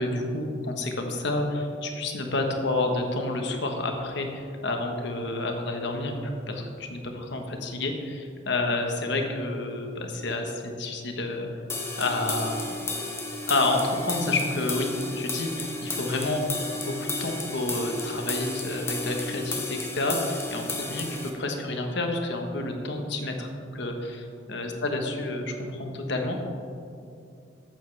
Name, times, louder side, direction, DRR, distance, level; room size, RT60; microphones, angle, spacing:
voice 1, 0.0-11.5 12.0-12.8 13.5-16.5 16.8-26.3, left 2 dB, 60° left, 3 dB, 1.3 m, -29 dB
sound 1, 11.7-21.3, left 2 dB, 15° left, 1.0 m, -33 dB
14.0 x 9.2 x 3.4 m, 2.5 s
head